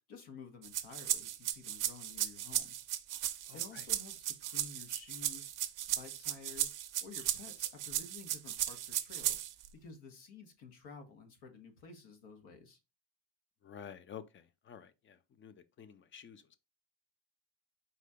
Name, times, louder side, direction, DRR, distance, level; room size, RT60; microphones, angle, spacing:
voice 1, 0.1-2.8 3.5-6.7 7.0-9.4 9.7-12.8, left 4 dB, 75° left, 1.3 m, -52 dB
sound 1, 0.6-9.7, right 12 dB, 45° right, 0.5 m, -36 dB
voice 2, 3.5-3.9 13.6-16.4, left 8 dB, 30° left, 0.3 m, -51 dB
4.2 x 2.8 x 3.4 m
supercardioid pair, 100°, 48 cm